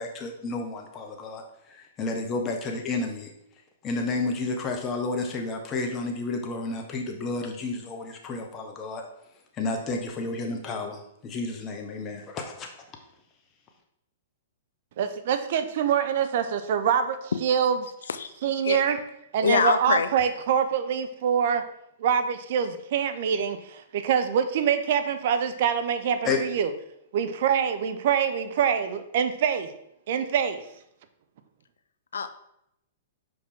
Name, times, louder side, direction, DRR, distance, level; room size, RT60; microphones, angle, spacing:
voice 1, 0.0-1.4 1.7-3.3 3.8-9.0 9.5-12.7 26.2-26.4, left 3 dB, 25° left, 3 dB, 1.2 m, -31 dB
voice 2, 15.0-17.7 18.4-19.0 19.3-21.6 22.0-23.6 23.9-26.7 27.1-29.7 30.1-30.6, right 8 dB, 60° right, 10 dB, 0.6 m, -25 dB
voice 3, 18.0-18.8 19.4-20.1 32.1-32.3, left 6 dB, 85° left, 10 dB, 0.5 m, -25 dB
5.9 x 4.8 x 3.7 m, 0.78 s
hypercardioid pair, 130°, 0 cm